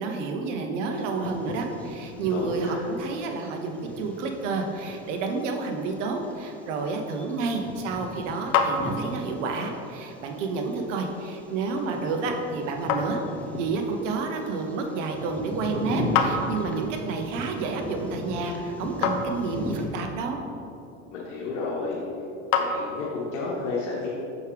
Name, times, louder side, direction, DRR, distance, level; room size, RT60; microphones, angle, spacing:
voice 1, 0.0-13.2 13.6-20.4, right 3 dB, 80° right, 4 dB, 0.9 m, -30 dB
Bird vocalization bird call bird song, 0.9-19.9, equal, 5° left, 0.8 m, -38 dB
voice 2, 2.3-2.8 21.1-22.0 22.6-24.1, left 3 dB, 85° left, -6 dB, 1.2 m, -31 dB
sound 1, 8.2-23.4, left 5 dB, 65° left, 0.7 m, -33 dB
6.3 x 4.8 x 3.4 m, 2.8 s
supercardioid pair, 100°, 36 cm